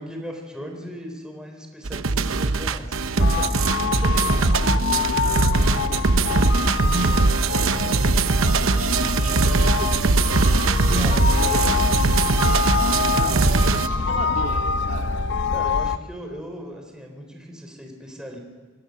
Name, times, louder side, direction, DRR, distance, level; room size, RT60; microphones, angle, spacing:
voice 1, 0.0-3.8 10.9-11.7 15.5-18.4, equal, 5° right, 2 dB, 3.9 m, -38 dB
sound 1, 1.9-13.9, right 3 dB, 80° right, 0.9 m, -21 dB
sound 2, 3.2-16.0, left 5 dB, 60° left, 0.7 m, -25 dB
voice 2, 3.9-4.9 5.2-7.2 7.5-11.9 13.1-15.1, right 2 dB, 40° right, 0 dB, 3.4 m, -38 dB
28.5 x 19.5 x 6.5 m, 1.4 s
head